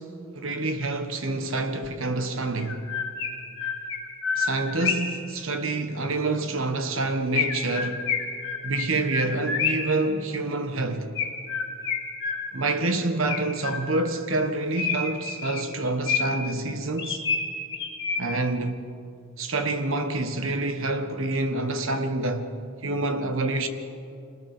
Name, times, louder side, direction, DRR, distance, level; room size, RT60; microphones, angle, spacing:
voice 1, 0.0-2.9 4.4-8.1 8.6-11.1 12.5-17.2 18.2-18.8 19.4-22.5 22.8-23.7, right 2 dB, 70° right, 1.5 m, -27 dB
Chirp tweet, 1.8-1.9 2.6-5.2 7.3-10.0 11.1-12.7 13.3-14.1 14.8-16.5 17.0-18.5, left 5 dB, 60° left, 2.9 m, -29 dB
26.5 x 20.0 x 5.2 m
head